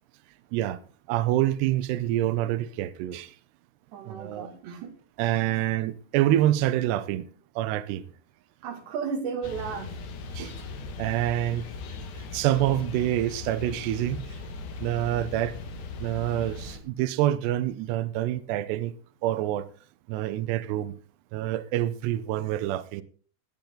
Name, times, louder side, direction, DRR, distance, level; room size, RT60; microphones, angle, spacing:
voice 1, 1.1-3.3 4.1-4.5 5.2-7.2 7.6-8.0 10.3-10.5 11.0-11.7 12.3-14.2 14.8-15.6 16.0-18.9 19.2-19.7 20.1-20.9 21.3-23.0, right 13 dB, 85° right, 2.4 m, -26 dB
voice 2, 3.9-4.9 8.6-9.9 10.4-10.5, right 6 dB, 65° right, 4.2 m, -34 dB
sound 1, 9.4-16.8, left 3 dB, 65° left, 3.8 m, -38 dB
19.5 x 8.8 x 3.9 m
omnidirectional pair, 5.7 m